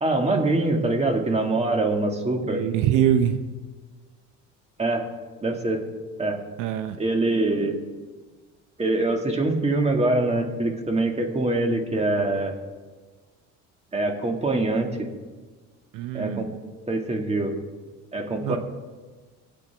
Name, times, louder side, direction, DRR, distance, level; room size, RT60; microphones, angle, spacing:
voice 1, 0.0-2.6 4.8-5.1 5.4-5.8 6.2-6.4 7.0-7.8 8.8-12.5 13.9-15.1 16.1-16.5 16.9-17.5 18.1-18.6, right 2 dB, 20° right, 3 dB, 2.1 m, -24 dB
voice 2, 2.4-3.4 6.6-7.0 15.9-16.5 18.4-18.6, right 10 dB, 75° right, 9 dB, 0.8 m, -23 dB
24.5 x 8.3 x 3.5 m, 1.4 s
cardioid pair, 100°, 31 cm